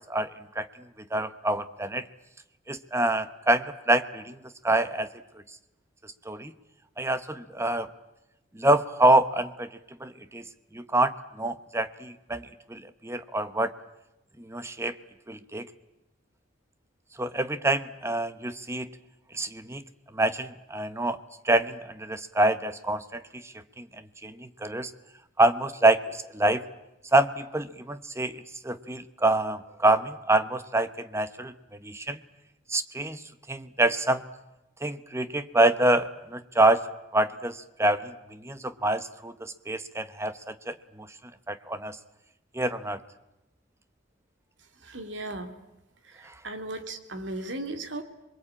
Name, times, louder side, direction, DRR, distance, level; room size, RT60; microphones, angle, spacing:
voice 1, 1.1-2.1 2.7-4.4 4.6-5.1 6.0-6.5 7.0-7.9 8.5-9.7 10.0-10.4 10.7-13.7 14.4-15.0 15.3-15.7 17.2-18.9 19.3-19.8 20.1-21.2 21.4-23.9 24.2-24.9 25.4-26.6 27.1-31.5 31.8-32.2 32.7-33.2 33.5-34.2 34.8-36.8 37.1-41.1 41.5-42.0 42.5-43.0, right 2 dB, 15° right, 12 dB, 1.0 m, -26 dB
voice 2, 44.8-45.5 46.0-48.0, right 2 dB, 80° right, 7 dB, 2.5 m, -36 dB
27.0 x 22.0 x 8.7 m, 0.94 s
head